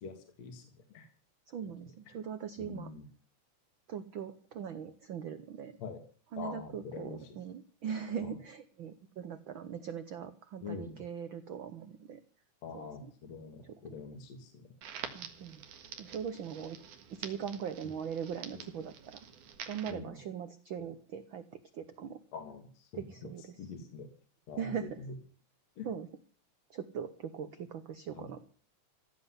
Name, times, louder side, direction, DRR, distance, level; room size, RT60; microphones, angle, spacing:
voice 1, 0.0-0.6 0.9-1.1 2.6-3.0 5.8-6.0 6.4-7.3 8.2-8.3 10.6-11.0 12.6-14.6 17.8-17.9 18.5-18.6 19.9-20.2 20.8-20.9 22.3-22.9 23.6-24.1 24.5-24.7 25.8-25.9 28.1-28.3, left 5 dB, 60° left, 5 dB, 2.9 m, -44 dB
voice 2, 1.5-2.9 3.9-5.8 6.3-12.2 12.7-12.9 15.1-15.6 16.0-16.8 17.2-19.2 19.7-21.4 21.7-22.2 22.9-23.7 24.6-25.0 25.8-26.1 26.7-28.5, right 7 dB, 70° right, 10 dB, 1.2 m, -40 dB
Crackle, 14.8-19.9, right 8 dB, 85° right, 3.1 m, -47 dB
16.0 x 7.7 x 9.7 m, 0.43 s
omnidirectional pair, 3.4 m